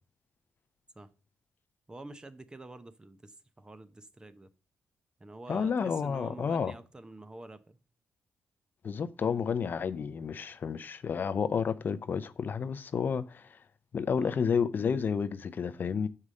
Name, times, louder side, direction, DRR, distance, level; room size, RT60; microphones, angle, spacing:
voice 1, 1.9-4.5 5.2-7.8 14.1-14.4, right 2 dB, 20° right, 0.6 m, -47 dB
voice 2, 5.5-6.7 8.8-13.6 13.9-16.1, left 6 dB, 50° left, 0.5 m, -31 dB
5.5 x 4.8 x 6.3 m
cardioid pair, 90°, 4 cm